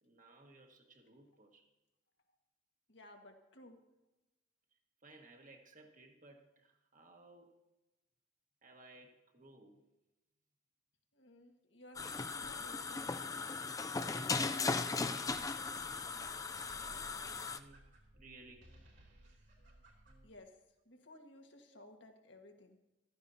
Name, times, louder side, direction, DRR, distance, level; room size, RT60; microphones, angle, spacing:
voice 1, 0.0-1.7 5.0-7.5 8.6-9.8 15.8-15.9 16.6-16.8 17.4-17.8 18.2-18.7 21.7-21.8, right 2 dB, 45° right, 3 dB, 1.7 m, -59 dB
voice 2, 2.9-3.8 11.1-12.1 12.4-13.4 20.2-20.5 20.9-22.8, left 1 dB, 70° left, 3 dB, 1.6 m, -57 dB
sound 1, 12.0-17.6, left 4 dB, 20° left, 0.4 m, -38 dB
sound 2, 15.2-20.4, right 1 dB, 70° right, 3.4 m, -61 dB
15.0 x 13.0 x 2.8 m, 1.0 s
head